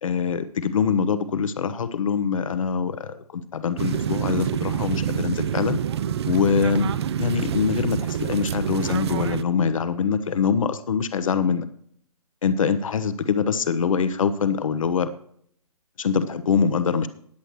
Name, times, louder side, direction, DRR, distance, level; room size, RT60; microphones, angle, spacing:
voice 1, 0.0-5.8 6.2-11.7 12.4-15.1 16.0-17.1, left 6 dB, 60° left, 12 dB, 0.9 m, -24 dB
sound 1, 3.8-9.4, right 9 dB, 45° right, 0.6 m, -27 dB
20.0 x 7.8 x 3.1 m, 0.63 s
figure-of-eight pair, 130°, 19 cm